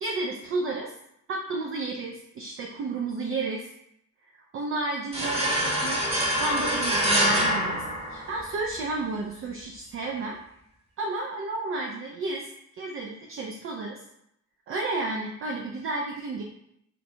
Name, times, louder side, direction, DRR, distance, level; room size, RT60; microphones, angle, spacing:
voice 1, 0.0-0.9 1.3-3.7 4.5-7.8 8.1-10.4 11.0-12.5 12.7-14.0 14.7-16.4, right 3 dB, 30° right, -1 dB, 0.4 m, -32 dB
Ohrenbetaeubende Crispyness, 5.1-8.7, equal, 15° right, 1.0 m, -25 dB
2.5 x 2.2 x 4.0 m, 0.77 s
figure-of-eight pair, 40°, 45 cm